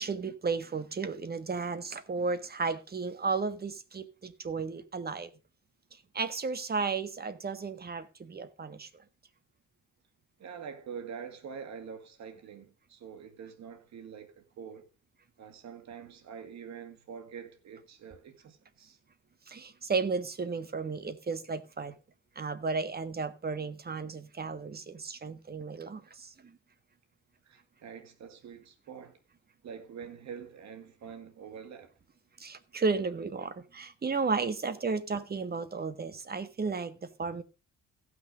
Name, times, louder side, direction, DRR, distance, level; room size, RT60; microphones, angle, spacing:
voice 1, 0.0-5.3 6.1-8.9 19.5-21.9 22.3-26.3 32.4-37.4, right 4 dB, 30° right, 1.5 m, -33 dB
voice 2, 10.4-14.9 15.4-19.0 27.4-29.2 29.6-31.9, right 7 dB, 65° right, 2.0 m, -45 dB
16.0 x 6.3 x 5.0 m
cardioid pair, 90°, 30 cm